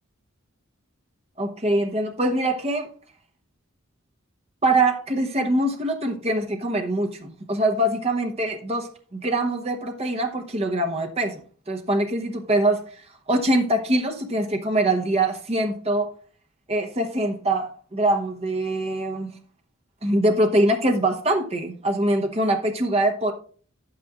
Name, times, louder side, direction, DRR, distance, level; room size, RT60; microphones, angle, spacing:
voice 1, 1.4-2.9 4.6-11.4 11.7-12.8 13.3-16.1 16.7-19.3 20.0-23.3, right 1 dB, 30° right, 0.9 m, -23 dB
10.0 x 8.8 x 2.4 m
head